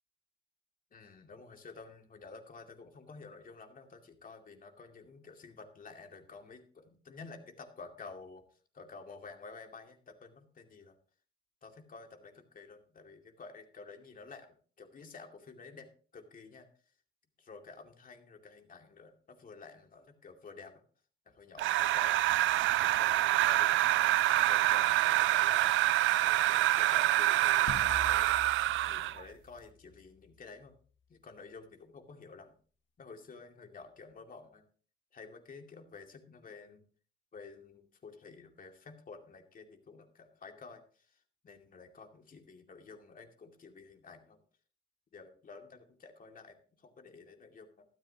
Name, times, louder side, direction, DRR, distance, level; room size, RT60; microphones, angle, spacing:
voice 1, 0.9-8.4 8.7-11.0 11.6-15.9 16.1-16.7 17.4-20.8 21.3-22.2 22.8-25.8 26.2-28.3 28.8-30.7 31.1-32.6 33.0-34.6 35.1-36.8 37.3-44.4 45.1-47.9, left 4 dB, 45° left, 4 dB, 2.4 m, -51 dB
sound 1, 21.6-29.2, right 15 dB, 75° right, 0.4 m, -26 dB
sound 2, 27.7-30.3, left 6 dB, 70° left, 1.2 m, -45 dB
13.0 x 12.0 x 2.9 m, 0.40 s
cardioid pair, 90°, 20 cm